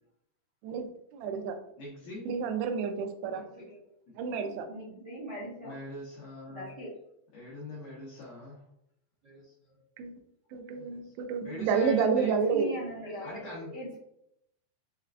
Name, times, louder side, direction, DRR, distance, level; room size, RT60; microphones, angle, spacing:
voice 1, 1.1-1.6 2.3-3.4 4.2-4.7 10.0-10.1 10.5-12.7, right 6 dB, 85° right, 6 dB, 2.6 m, -29 dB
voice 2, 1.8-2.2 5.6-6.7 7.3-8.6 11.4-12.4 13.2-13.7, left 1 dB, 75° left, -7 dB, 2.1 m, -40 dB
voice 3, 3.2-3.8 4.7-5.7 6.5-6.9 9.2-9.8 10.7-11.1 12.2-14.0, right 1 dB, 65° right, -10 dB, 1.5 m, -41 dB
6.4 x 2.2 x 2.4 m, 0.75 s
omnidirectional pair, 4.9 m